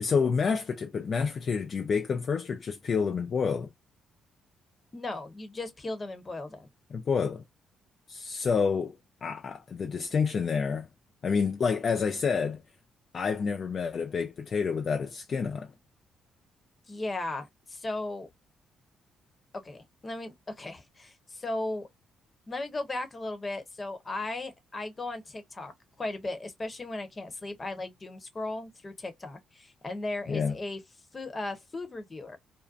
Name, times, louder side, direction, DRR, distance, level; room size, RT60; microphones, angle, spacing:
voice 1, 0.0-3.7 6.9-7.4 8.1-10.9 11.2-12.6 13.1-15.7 30.3-30.5, left 5 dB, 50° left, 0.3 m, -28 dB
voice 2, 4.9-6.7 16.9-18.3 19.6-21.9 22.5-25.7 26.0-30.8 31.1-32.4, left 2 dB, 30° left, 0.9 m, -36 dB
2.6 x 2.1 x 2.4 m
cardioid pair, 90°, 0 cm